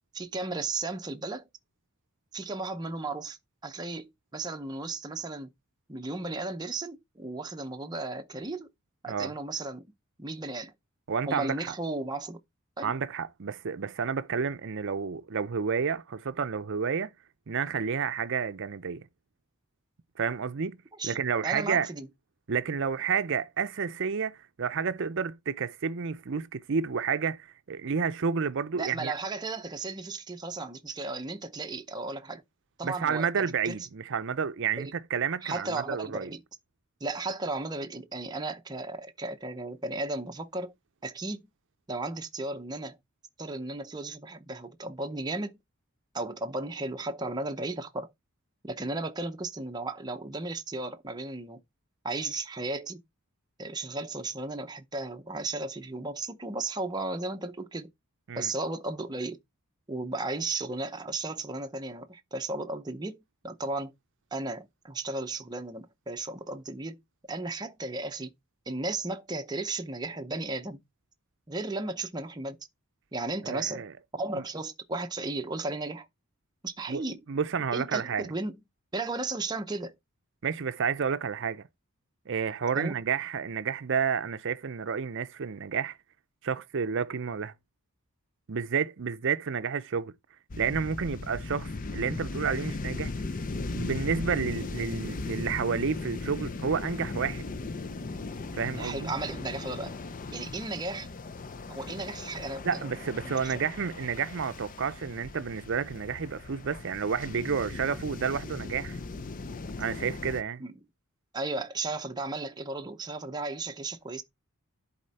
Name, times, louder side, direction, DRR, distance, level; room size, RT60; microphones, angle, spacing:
voice 1, 0.1-1.5 2.3-5.5 5.9-8.7 9.0-9.8 10.2-10.7 11.3-12.4 12.8-12.9 20.9-21.2 21.4-22.1 28.7-32.4 32.8-33.8 34.8-34.9 35.4-36.4 37.0-40.7 41.0-41.4 41.9-43.0 43.4-45.6 46.1-48.1 48.6-51.6 52.0-53.0 53.6-57.9 58.3-59.4 59.9-63.9 64.3-67.0 67.3-68.3 68.7-70.8 71.5-72.6 73.1-73.9 74.1-76.1 76.6-77.2 77.7-78.6 78.9-79.9 82.7-83.0 98.8-100.0 100.3-101.1 101.7-103.6 110.6-110.7 111.3-114.2, right 2 dB, 20° right, 0.7 m, -35 dB
voice 2, 11.1-11.7 12.8-17.1 17.5-19.0 20.2-20.8 21.0-21.9 22.5-29.1 32.8-36.3 58.3-58.5 73.4-73.9 74.3-74.4 76.9-77.0 77.3-78.3 80.4-81.6 82.3-86.0 86.4-87.5 88.5-90.1 90.6-93.1 93.7-97.4 98.5-99.1 102.6-109.0 109.8-110.6, right 6 dB, 60° right, 0.6 m, -30 dB
sound 1, 90.5-110.4, left 3 dB, 40° left, 0.5 m, -38 dB
11.0 x 4.3 x 4.1 m
head